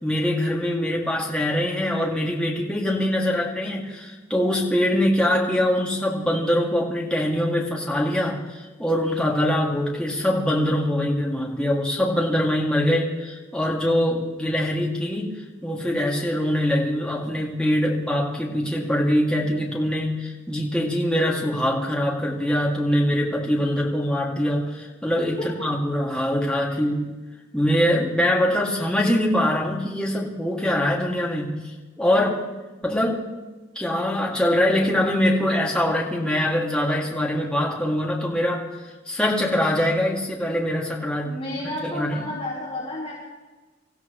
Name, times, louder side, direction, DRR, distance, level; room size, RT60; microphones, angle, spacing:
voice 1, 0.0-15.4 15.6-27.1 27.5-31.6 32.0-32.4 32.8-33.2 33.8-38.7 39.1-41.4 41.6-42.2, left 1 dB, 5° left, -3 dB, 2.3 m, -23 dB
voice 2, 41.2-43.1, left 1 dB, 30° left, -9 dB, 4.2 m, -31 dB
25.5 x 15.0 x 3.2 m, 1.2 s
head